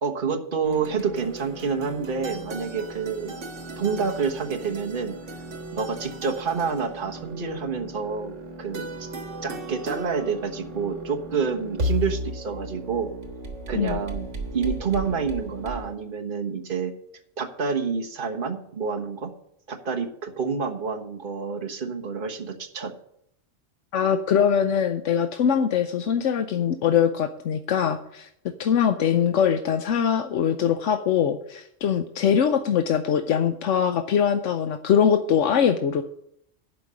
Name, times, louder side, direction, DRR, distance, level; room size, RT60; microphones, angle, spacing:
voice 1, 0.0-3.4 3.8-5.2 5.7-9.1 9.4-13.1 13.7-16.9 17.4-19.3 19.7-22.9, right 5 dB, 45° right, 2 dB, 1.4 m, -28 dB
sound 1, 0.6-15.9, right 1 dB, 80° right, 1.8 m, -35 dB
voice 2, 23.9-28.3 28.6-36.0, left 8 dB, 85° left, 8 dB, 1.0 m, -22 dB
11.0 x 5.3 x 8.6 m, 0.73 s
omnidirectional pair, 1.2 m